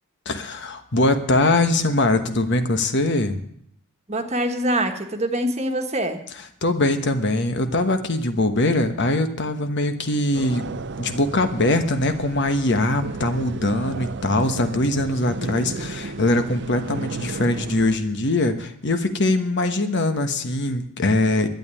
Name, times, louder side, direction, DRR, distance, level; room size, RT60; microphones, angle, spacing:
voice 1, 0.2-3.4 6.6-10.7 11.0-21.5, left 2 dB, 55° left, 8 dB, 1.2 m, -22 dB
voice 2, 4.1-6.2, right 1 dB, 30° right, 5 dB, 1.4 m, -24 dB
sound 1, 10.3-18.0, right 3 dB, 50° right, 0.6 m, -34 dB
12.0 x 9.0 x 9.7 m, 0.69 s
head